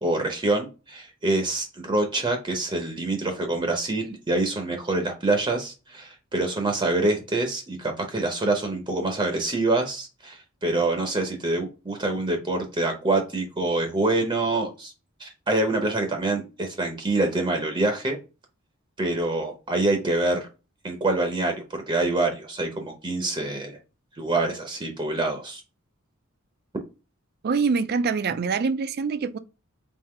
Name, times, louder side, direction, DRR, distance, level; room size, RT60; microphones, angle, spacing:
voice 1, 0.0-14.9 15.2-18.2 19.0-20.5 20.8-23.8 24.2-25.6, right 2 dB, 25° right, 0.7 m, -26 dB
voice 2, 27.4-29.4, right 5 dB, 50° right, 0.4 m, -24 dB
3.7 x 2.7 x 4.2 m
head